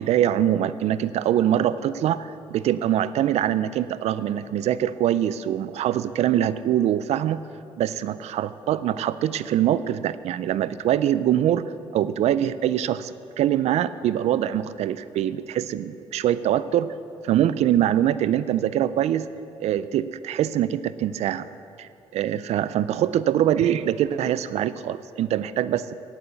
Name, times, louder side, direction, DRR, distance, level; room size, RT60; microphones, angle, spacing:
voice 1, 0.0-7.4 7.8-16.9 17.2-19.3 19.6-21.5 21.8-25.9, right 11 dB, 75° right, 15 dB, 0.4 m, -23 dB
9.1 x 8.7 x 8.3 m, 2.6 s
cardioid pair, 80°, 11 cm